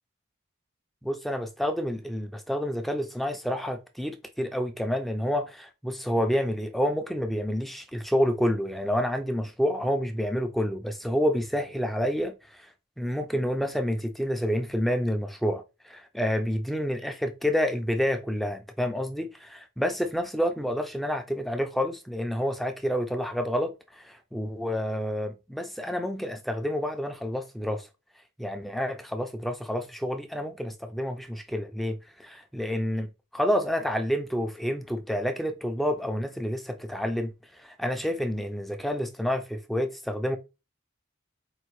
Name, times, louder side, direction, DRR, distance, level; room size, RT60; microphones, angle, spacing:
voice 1, 1.0-27.9 28.4-40.4, equal, ahead, 0.3 m, -29 dB
4.5 x 2.5 x 3.0 m
head